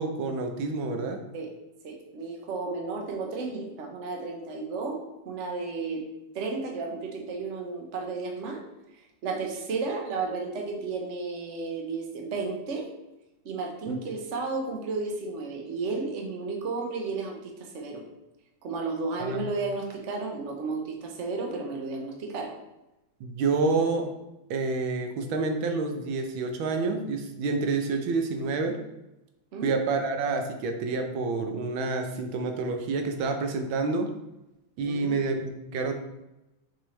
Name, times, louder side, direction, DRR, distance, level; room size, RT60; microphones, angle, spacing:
voice 1, 0.0-1.2 13.9-14.0 19.3-19.5 23.2-24.2 24.5-28.8 29.6-34.1 34.8-35.9, right 3 dB, 85° right, 5 dB, 1.6 m, -28 dB
voice 2, 1.8-6.0 6.3-8.6 9.2-12.9 13.4-18.0 18.6-22.5 29.5-29.7 34.8-35.2, right 4 dB, 45° right, 1 dB, 1.1 m, -33 dB
6.2 x 4.9 x 3.2 m, 0.94 s
omnidirectional pair, 2.1 m